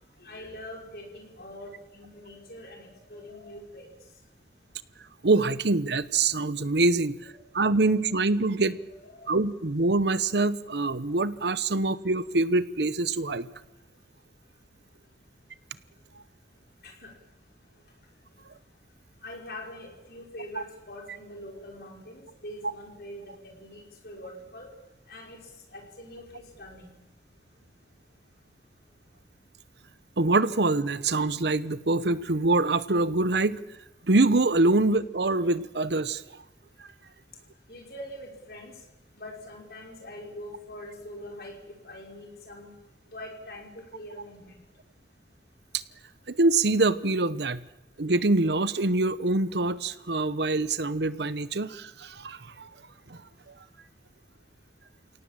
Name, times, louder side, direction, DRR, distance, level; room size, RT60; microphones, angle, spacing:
voice 1, 0.2-3.9 7.3-7.4 8.9-9.3 16.8-17.1 19.2-24.7 25.1-25.4 25.7-26.9 37.7-38.7 39.1-41.6 41.8-42.7 43.1-44.5, left 1 dB, 60° left, 1 dB, 5.6 m, -43 dB
voice 2, 5.2-7.2 7.5-8.8 9.3-13.5 30.2-33.6 34.1-36.2 45.7-45.8 46.3-47.6 48.0-52.7 53.1-53.2, right 2 dB, 75° right, 15 dB, 1.0 m, -24 dB
29.5 x 17.5 x 7.6 m, 0.99 s
head